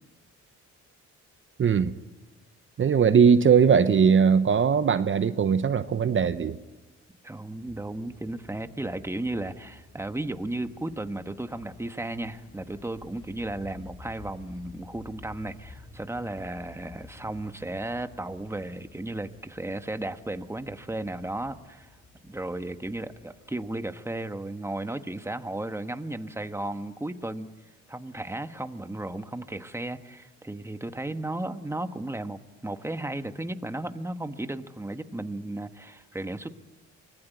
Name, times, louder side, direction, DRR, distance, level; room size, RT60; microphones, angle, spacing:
voice 1, 1.6-2.0 2.8-6.6, right 6 dB, 40° right, 12 dB, 0.9 m, -20 dB
voice 2, 7.2-21.9 22.2-27.5 27.9-36.5, right 1 dB, 10° right, 9 dB, 1.3 m, -34 dB
sound 1, 7.6-23.9, left 3 dB, 50° left, 7.8 m, -52 dB
25.0 x 19.0 x 9.3 m, 1.2 s
cardioid pair, 90°, 30 cm